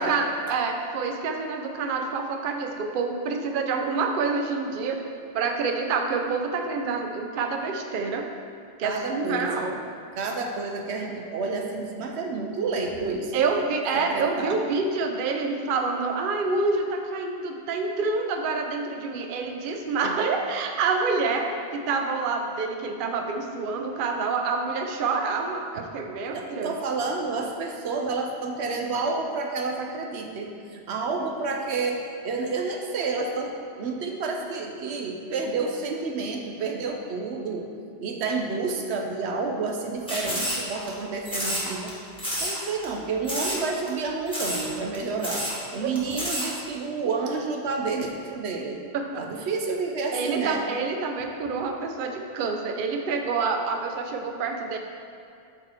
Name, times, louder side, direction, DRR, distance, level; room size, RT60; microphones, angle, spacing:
voice 1, 0.0-5.0 5.3-8.3 8.8-9.8 13.3-26.7 45.8-45.9 48.9-49.3 50.1-54.8, right 4 dB, 60° right, 4 dB, 0.7 m, -27 dB
voice 2, 8.8-9.7 10.2-13.3 13.9-14.6 26.3-37.7 38.0-41.9 42.4-45.5 45.7-48.8 49.2-50.7, right 4 dB, 90° right, 2 dB, 1.0 m, -29 dB
sound 1, 40.1-40.9 41.3-41.9 42.2-42.6 42.8-42.9 43.3-43.6 43.9-44.0 44.3-44.7 44.9-45.0 45.2-45.6 46.0-46.5, equal, 5° left, 1.4 m, -29 dB
6.3 x 4.8 x 4.4 m, 2.5 s
omnidirectional pair, 1.1 m